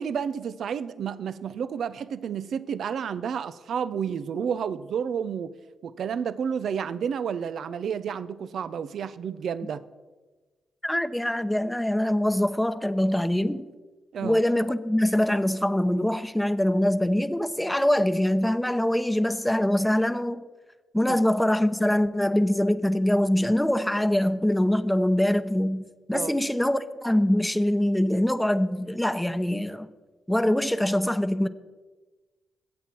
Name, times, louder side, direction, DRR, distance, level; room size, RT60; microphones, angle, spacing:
voice 1, 0.0-5.5 5.8-9.8 14.1-14.4 21.1-21.2 26.1-26.3, right 7 dB, 65° right, 0.6 m, -31 dB
voice 2, 10.8-13.7 14.2-20.4 20.9-29.9 30.3-31.5, left 1 dB, 5° left, 0.9 m, -24 dB
22.0 x 8.3 x 4.5 m
hypercardioid pair, 45°, 0 cm